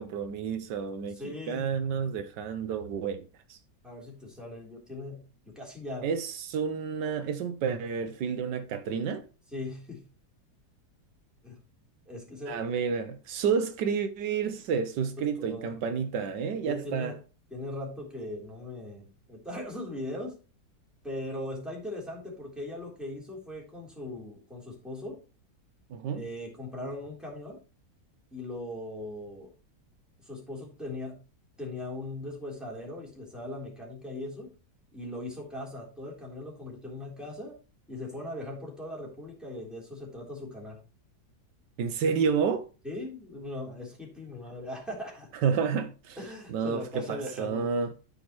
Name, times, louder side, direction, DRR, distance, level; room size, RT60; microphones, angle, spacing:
voice 1, 0.0-3.2 3.5-3.6 6.0-9.2 12.5-17.1 25.9-26.2 41.8-42.7 45.4-46.2 46.5-47.9, right 6 dB, 80° right, 1.4 m, -30 dB
voice 2, 1.1-1.7 3.8-6.1 9.5-10.0 11.4-11.6 12.1-12.6 15.2-15.7 16.6-17.1 17.5-20.4 21.0-25.2 26.1-27.6 28.3-29.5 30.2-31.2 31.6-34.5 34.9-37.6 37.9-40.8 42.8-45.3 46.2-47.7, left 1 dB, ahead, 3.6 m, -39 dB
13.5 x 5.3 x 3.1 m
omnidirectional pair, 1.8 m